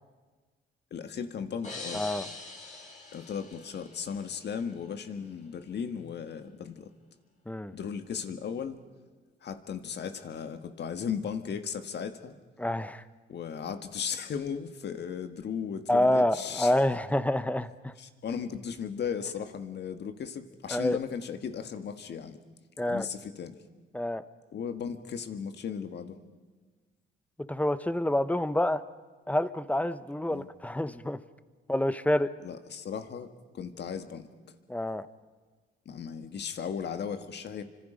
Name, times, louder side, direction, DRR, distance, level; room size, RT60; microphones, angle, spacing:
voice 1, 0.9-2.0 3.1-6.9 7.7-8.8 9.4-12.4 13.3-16.7 18.0-22.4 22.9-23.6 24.5-26.2 30.3-30.5 32.4-34.3 35.9-37.6, left 7 dB, 60° left, 8 dB, 1.7 m, -36 dB
sound 1, 1.6-4.4, left 3 dB, 35° left, 6.3 m, -43 dB
voice 2, 1.9-2.3 7.5-7.7 12.6-13.0 15.9-17.9 20.7-21.0 22.8-23.1 23.9-24.2 27.5-28.8 29.3-31.2 31.7-32.3 34.7-35.1, left 1 dB, 5° left, 14 dB, 0.9 m, -27 dB
30.0 x 25.5 x 5.2 m, 1.4 s
cardioid pair, 90°, 20 cm